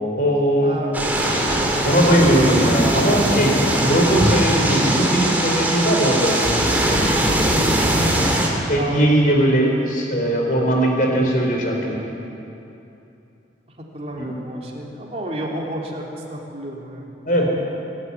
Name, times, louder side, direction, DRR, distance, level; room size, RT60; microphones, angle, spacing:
voice 1, 0.0-0.8 1.8-3.5 3.8-6.5 8.7-11.9 14.2-14.3 17.2-17.5, right 1 dB, 50° left, 0 dB, 4.3 m, -19 dB
voice 2, 0.6-1.9 3.5-4.2 8.7-9.1 13.9-17.1, right 1 dB, 35° right, -2 dB, 3.3 m, -31 dB
sound 1, 0.9-8.5, right 1 dB, 10° right, 2.7 m, -20 dB
24.0 x 12.0 x 9.9 m, 2.8 s
head